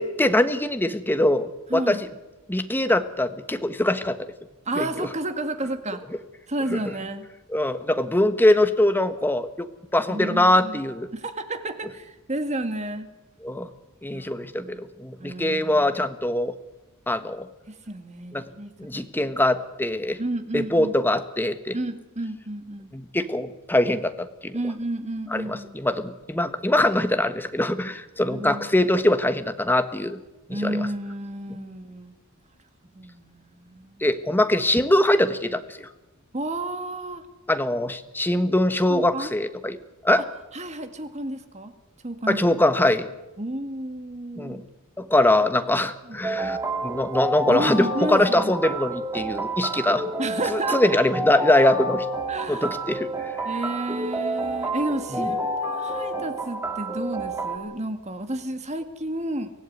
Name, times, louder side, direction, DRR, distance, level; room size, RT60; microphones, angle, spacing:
voice 1, 0.0-2.1 2.5-4.2 4.8-5.1 6.7-6.8 7.5-9.7 9.9-11.1 13.4-13.7 14.0-16.5 17.1-17.5 18.3-18.4 18.8-20.2 20.5-21.8 22.9-24.5 25.3-30.2 30.6-30.9 34.0-35.9 37.5-39.8 40.0-40.2 42.3-43.1 44.4-44.6 45.0-46.6 46.8-50.0 50.5-52.0 52.5-53.1 55.2-55.3, left 1 dB, 10° left, 10 dB, 1.3 m, -22 dB
voice 2, 1.7-2.0 4.7-6.0 6.5-7.3 10.1-10.8 11.1-13.1 14.1-14.3 14.6-14.9 15.2-15.9 17.7-18.7 20.2-21.0 21.7-22.9 24.5-25.8 28.3-28.8 30.5-32.2 32.9-34.1 36.3-37.2 38.9-39.3 40.5-41.7 42.0-42.5 43.4-44.6 46.0-46.2 47.5-48.5 50.2-51.0 52.3-52.7 53.5-59.5, right 1 dB, 30° right, 8 dB, 2.0 m, -31 dB
sound 1, 46.2-57.6, right 1 dB, 15° right, 2.4 m, -29 dB
24.0 x 16.0 x 9.5 m, 1.0 s
head